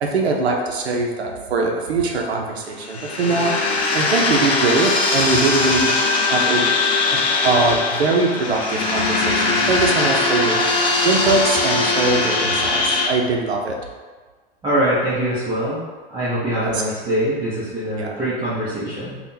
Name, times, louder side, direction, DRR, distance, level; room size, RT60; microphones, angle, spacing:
voice 1, 0.0-3.7 3.9-5.9 6.3-6.7 7.1-10.6 11.0-13.8 16.6-16.8 18.0-18.1, right 3 dB, 80° right, 1 dB, 0.6 m, -22 dB
sound 1, 2.8-13.1, left 3 dB, 15° left, 0.3 m, -20 dB
voice 2, 14.6-15.8 16.1-19.2, right 1 dB, 15° right, -11 dB, 0.7 m, -23 dB
3.5 x 2.3 x 2.7 m, 1.4 s
hypercardioid pair, 110°, 31 cm